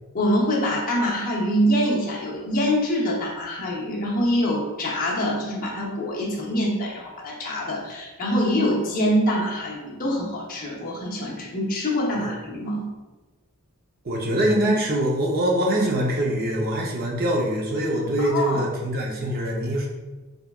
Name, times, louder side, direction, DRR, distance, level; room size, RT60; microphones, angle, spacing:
voice 1, 0.1-12.9 18.2-18.6, equal, 40° left, -4 dB, 0.8 m, -25 dB
voice 2, 14.0-19.9, right 1 dB, 45° right, -1 dB, 0.6 m, -23 dB
3.5 x 3.5 x 2.3 m, 1.2 s
head